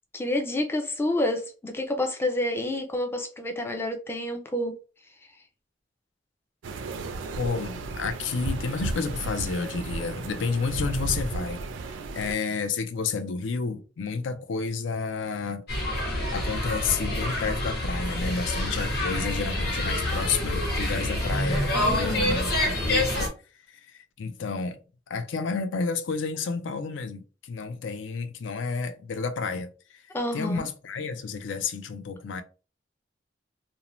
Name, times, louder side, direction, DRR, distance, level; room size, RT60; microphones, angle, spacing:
voice 1, 0.1-4.7 21.7-22.4 30.1-30.7, left 1 dB, 15° left, 0.4 m, -29 dB
sound 1, 6.6-12.4, right 3 dB, 85° right, 0.4 m, -34 dB
voice 2, 7.4-11.6 11.9-15.6 16.1-23.3 23.7-24.8 25.1-30.0 30.3-32.4, left 5 dB, 80° left, 0.4 m, -31 dB
sound 2, 15.7-23.3, left 1 dB, 60° left, 1.1 m, -27 dB
2.6 x 2.0 x 2.9 m
head